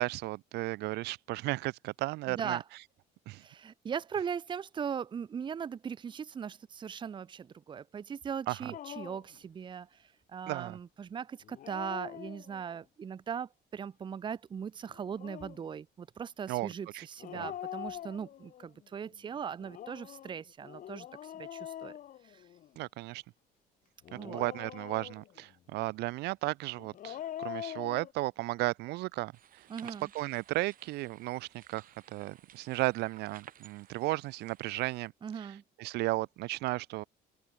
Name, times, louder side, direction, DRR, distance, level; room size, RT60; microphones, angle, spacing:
voice 1, 0.0-2.6 3.3-3.4 8.5-8.7 10.5-10.8 16.5-17.1 17.4-17.5 22.8-23.2 24.1-29.6 30.1-31.8 32.1-35.5 35.8-37.0, right 19 dB, 80° right, 0.5 m, -34 dB
voice 2, 2.3-2.6 3.4-22.0 22.2-22.4 24.1-24.5 29.7-30.1 35.2-35.6, right 7 dB, 30° right, 0.5 m, -39 dB
Dog, 8.7-9.4 11.4-12.8 14.9-15.7 17.2-18.7 19.6-22.8 24.0-25.4 26.8-28.1, left 11 dB, 55° left, 0.8 m, -44 dB
sound 1, 29.3-35.1, right 10 dB, 55° right, 6.3 m, -56 dB
open air
cardioid pair, 110°, 17 cm